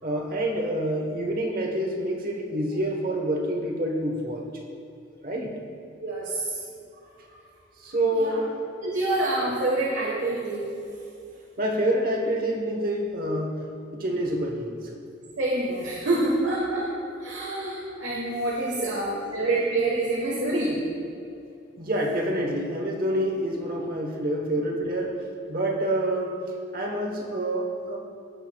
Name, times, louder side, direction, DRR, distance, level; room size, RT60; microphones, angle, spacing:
voice 1, 0.0-4.5 5.2-5.6 7.8-8.9 11.6-13.6 13.9-14.9 18.8-19.4 21.8-25.2 25.5-26.4 26.7-28.0, right 1 dB, 50° right, 1 dB, 1.1 m, -27 dB
voice 2, 6.0-6.6 8.1-8.4 8.8-10.7 15.4-16.9 17.2-20.8 23.4-23.5, right 2 dB, 85° right, -4 dB, 1.3 m, -27 dB
15.5 x 6.9 x 2.3 m, 2.6 s
head